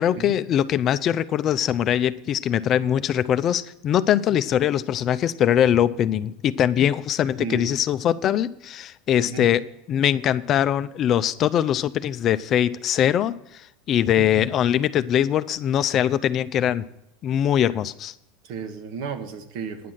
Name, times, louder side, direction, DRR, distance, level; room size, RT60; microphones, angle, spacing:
voice 1, 0.0-9.6 9.9-13.3 13.9-16.9 17.2-18.1, left 10 dB, 40° left, 13 dB, 0.4 m, -22 dB
voice 2, 7.4-7.7 9.2-9.5 14.2-14.5 18.4-19.9, right 6 dB, 65° right, 7 dB, 1.4 m, -34 dB
10.0 x 6.2 x 7.3 m, 0.79 s
hypercardioid pair, 105°, 0 cm